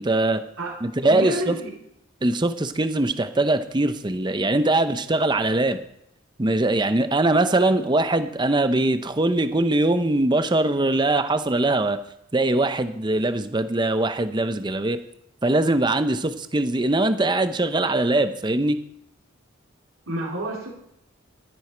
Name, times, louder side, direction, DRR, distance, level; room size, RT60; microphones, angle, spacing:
voice 1, 0.0-0.4 0.8-1.6 2.2-5.8 6.4-12.0 12.3-15.0 15.4-18.8, right 2 dB, 20° right, 10 dB, 0.6 m, -22 dB
voice 2, 1.0-1.7 20.1-20.7, right 1 dB, 90° right, -2 dB, 3.3 m, -29 dB
12.5 x 9.9 x 4.5 m, 0.74 s
head